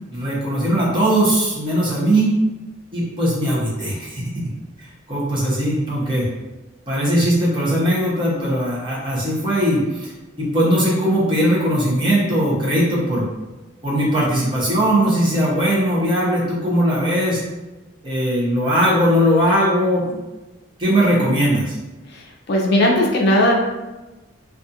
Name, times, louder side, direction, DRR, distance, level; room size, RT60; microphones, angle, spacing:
voice 1, 0.1-2.3 2.9-4.3 4.8-6.3 6.9-10.1 10.4-13.2 13.8-17.4 18.0-20.2 20.8-21.8, equal, 25° right, -6 dB, 0.7 m, -19 dB
voice 2, 22.5-23.5, left 1 dB, 55° left, -1 dB, 0.4 m, -16 dB
2.4 x 2.3 x 2.7 m, 1.1 s
head